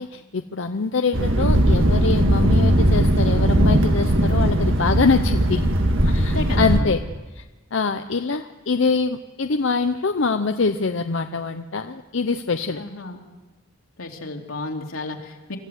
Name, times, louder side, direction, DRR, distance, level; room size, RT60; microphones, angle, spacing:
voice 1, 0.0-5.7 6.0-7.0 7.3-7.4 7.7-12.8, left 4 dB, 60° left, 7 dB, 0.7 m, -24 dB
Thunder, 1.1-6.8, right 1 dB, 65° right, 1.9 m, -18 dB
voice 2, 6.1-6.9 12.8-13.2 14.0-15.6, left 2 dB, 85° left, 1 dB, 2.7 m, -32 dB
26.0 x 14.5 x 8.1 m, 1.2 s
head